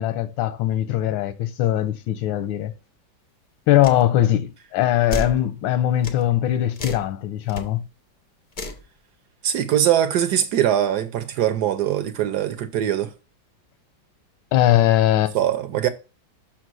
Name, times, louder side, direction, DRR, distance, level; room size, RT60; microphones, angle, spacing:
voice 1, 0.0-2.7 3.7-7.9 14.5-15.3, left 12 dB, 90° left, 1.5 m, -21 dB
sound 1, 3.8-4.0 5.1-5.4 6.0-6.2 6.8-7.1 7.5-7.6 8.5-8.8, left 2 dB, 70° left, 0.4 m, -30 dB
voice 2, 9.4-13.1 15.3-15.9, right 10 dB, 70° right, 1.0 m, -22 dB
6.0 x 4.1 x 6.1 m
omnidirectional pair, 2.1 m